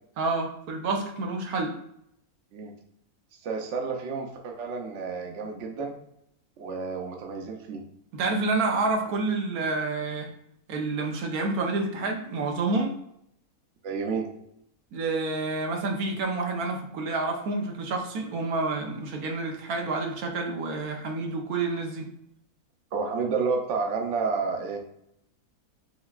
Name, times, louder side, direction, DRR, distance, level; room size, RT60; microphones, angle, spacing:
voice 1, 0.2-1.7 8.1-10.3 10.7-12.9 14.9-22.1, right 3 dB, 80° right, 2 dB, 1.2 m, -28 dB
voice 2, 3.4-5.9 6.6-7.8 13.8-14.3 22.9-24.8, right 4 dB, 55° right, 2 dB, 1.0 m, -30 dB
5.8 x 3.4 x 2.4 m, 0.76 s
omnidirectional pair, 1.6 m